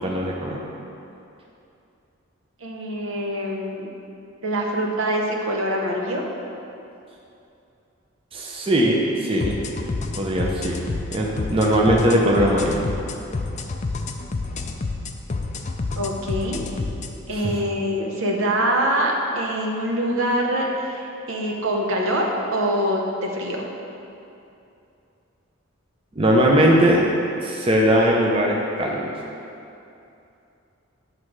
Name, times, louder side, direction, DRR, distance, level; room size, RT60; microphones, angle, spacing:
voice 1, 0.0-0.6 8.3-9.6 10.2-12.9 17.3-17.5 26.2-27.1 27.4-29.1, equal, 25° right, -2 dB, 0.6 m, -20 dB
voice 2, 2.6-3.9 4.4-6.3 16.0-16.6 17.3-23.7, equal, 75° right, 0 dB, 0.9 m, -24 dB
sound 1, 9.4-17.1, left 3 dB, 35° left, 0.4 m, -29 dB
9.0 x 3.2 x 6.2 m, 2.7 s
head